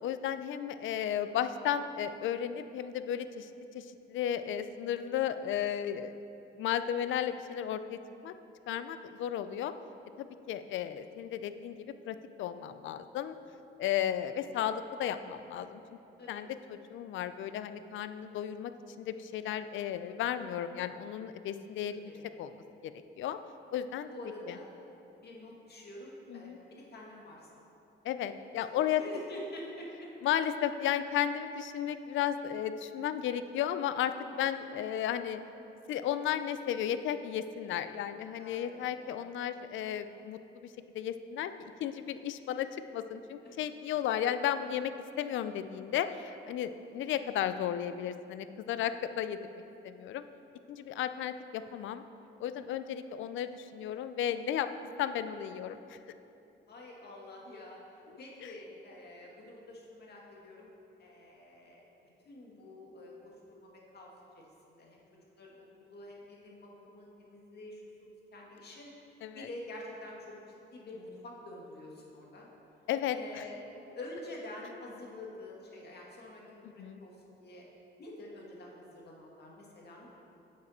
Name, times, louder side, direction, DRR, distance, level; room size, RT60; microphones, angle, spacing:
voice 1, 0.0-3.5 3.7-6.2 6.6-8.3 8.7-9.7 10.2-11.8 12.0-13.4 13.8-15.8 16.3-18.7 19.0-22.1 22.4-23.4 23.7-24.1 24.5-24.6 26.3-26.6 28.0-29.0 30.2-35.4 35.9-42.7 42.9-44.9 45.2-49.4 49.8-50.2 50.7-52.0 52.4-54.7 55.0-56.0 58.4-58.5 69.2-69.5 72.9-73.5 76.8-77.0, left 10 dB, 75° left, 11 dB, 0.5 m, -34 dB
voice 2, 16.2-16.5 22.0-22.3 24.1-24.7 25.2-27.4 29.0-30.1 38.4-39.1 41.6-41.7 43.4-43.5 56.7-57.8 58.2-60.7 61.0-61.8 62.3-63.1 63.5-64.4 64.7-65.0 65.4-67.8 68.3-68.9 69.3-70.3 70.7-72.5 73.1-73.6 73.9-77.6 78.0-80.1, left 1 dB, 55° left, -2 dB, 2.1 m, -47 dB
9.5 x 7.6 x 4.3 m, 2.8 s
cardioid pair, 90°, 20 cm